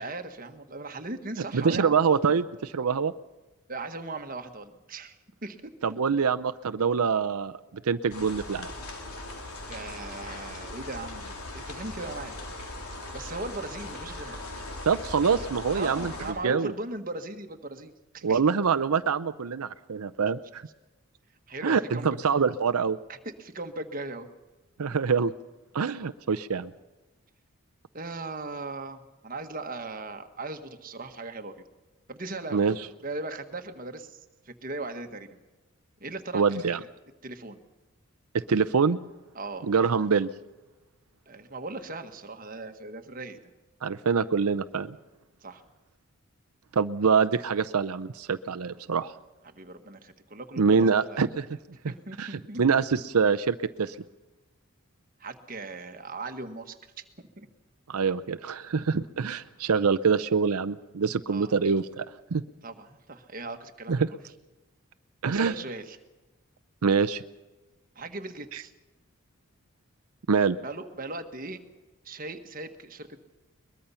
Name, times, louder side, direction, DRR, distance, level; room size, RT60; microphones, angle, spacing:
voice 1, 0.0-2.0 3.7-5.7 9.7-12.4 13.1-14.4 15.7-18.4 21.5-22.1 23.1-24.3 27.9-31.6 32.1-32.6 33.0-35.3 36.0-36.9 37.2-37.6 39.3-39.7 41.3-43.4 45.4-45.6 49.4-51.2 51.9-52.6 55.2-57.0 57.4-57.5 61.3-61.5 62.6-64.0 65.2-66.0 67.9-68.7 70.6-71.6 72.0-73.2, right 2 dB, 40° right, 6 dB, 1.5 m, -38 dB
voice 2, 1.5-3.1 5.8-7.5 7.8-8.7 14.9-16.1 16.4-16.7 18.2-20.6 21.6-23.0 24.8-25.3 25.7-26.7 32.5-32.8 36.3-36.8 38.5-39.0 39.7-40.3 43.8-45.0 46.8-49.1 50.6-51.5 52.2-54.0 57.9-62.0 62.3-62.4 63.9-64.1 65.2-65.5 66.8-67.2 68.5-68.6 70.3-70.6, right 5 dB, 85° right, 12 dB, 0.6 m, -25 dB
sound 1, 8.1-16.3, left 2 dB, 85° left, 3.8 m, -39 dB
22.5 x 21.0 x 5.7 m, 1.1 s
head